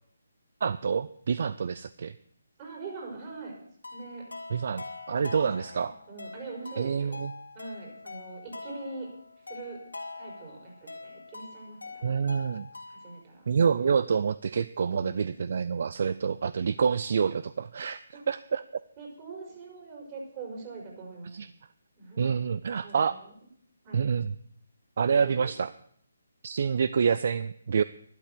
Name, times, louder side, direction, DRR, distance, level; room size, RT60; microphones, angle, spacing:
voice 1, 0.6-2.1 4.5-5.9 6.8-7.3 12.0-12.7 13.5-18.0 18.3-18.6 21.3-21.5 22.2-23.1 23.9-24.3 25.0-25.7 26.4-27.8, right 6 dB, 55° right, 16 dB, 0.4 m, -27 dB
voice 2, 2.6-3.6 3.9-4.3 5.1-7.2 7.6-9.1 9.4-9.8 10.2-12.2 12.9-13.4 14.8-15.4 18.1-18.3 19.0-21.3 22.0-22.5 22.8-23.3 23.8-24.1 25.1-25.5, right 3 dB, 30° right, 0 dB, 5.1 m, -43 dB
sound 1, 3.8-13.2, left 3 dB, 90° left, 2.9 m, -44 dB
12.0 x 12.0 x 6.7 m, 0.64 s
figure-of-eight pair, 155°, 0 cm